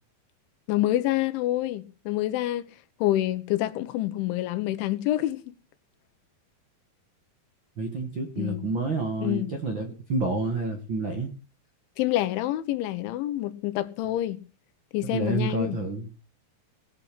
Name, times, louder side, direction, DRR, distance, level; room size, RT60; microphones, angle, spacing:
voice 1, 0.7-2.7 3.0-5.5 8.4-8.6 9.2-9.5 12.0-14.4 14.9-15.8, left 14 dB, 90° left, 3.5 m, -27 dB
voice 2, 7.8-11.3 15.1-16.1, right 3 dB, 70° right, 1.1 m, -29 dB
18.5 x 8.4 x 5.9 m
omnidirectional pair, 5.3 m